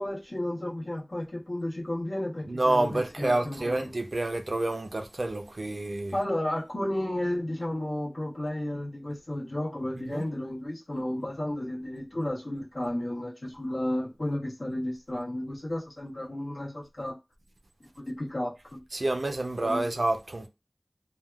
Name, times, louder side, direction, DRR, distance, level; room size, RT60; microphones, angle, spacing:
voice 1, 0.0-3.9 6.1-17.2 18.0-18.8 19.6-19.8, left 1 dB, 90° left, 1.0 m, -33 dB
voice 2, 2.5-6.2 9.9-10.2 18.9-20.5, right 2 dB, 90° right, 0.4 m, -28 dB
3.3 x 2.1 x 2.3 m
wide cardioid pair, 40°, 0 cm